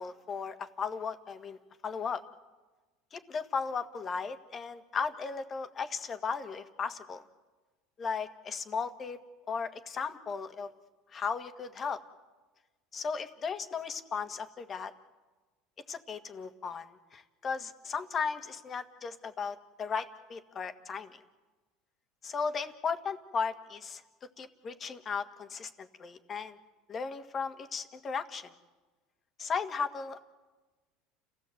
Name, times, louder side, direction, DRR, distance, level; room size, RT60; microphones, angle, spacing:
voice 1, 0.0-1.6 1.8-2.2 3.1-7.2 8.0-9.2 9.5-10.7 11.1-12.0 12.9-14.9 15.9-21.2 22.2-24.0 24.4-26.6 26.9-28.5 29.4-30.2, left 5 dB, 30° left, 8 dB, 1.7 m, -36 dB
30.0 x 16.5 x 7.9 m, 1.2 s
supercardioid pair, 115°, 0 cm